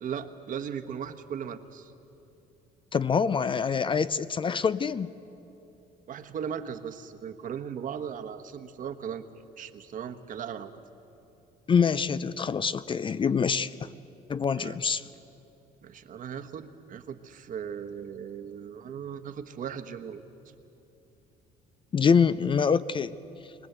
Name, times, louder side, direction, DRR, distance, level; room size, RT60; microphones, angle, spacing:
voice 1, 0.0-1.9 6.1-9.2 9.6-10.8 14.5-14.8 15.8-20.2, right 8 dB, 55° right, 8 dB, 1.3 m, -37 dB
voice 2, 2.9-5.1 11.7-13.9 14.3-15.0 21.9-23.1, left 6 dB, 30° left, 15 dB, 0.5 m, -25 dB
23.0 x 19.0 x 8.1 m, 2.9 s
cardioid pair, 110°, 17 cm